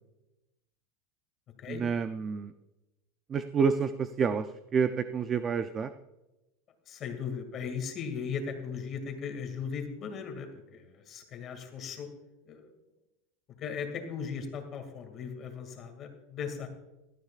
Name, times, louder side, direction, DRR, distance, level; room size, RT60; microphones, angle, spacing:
voice 1, 1.7-2.5 3.3-4.5 4.7-5.9, right 6 dB, 20° right, 10 dB, 0.4 m, -28 dB
voice 2, 6.9-12.1 12.5-12.7 13.6-16.7, left 6 dB, 30° left, 5 dB, 2.2 m, -38 dB
18.5 x 13.0 x 2.4 m, 1.0 s
supercardioid pair, 160°, 0 cm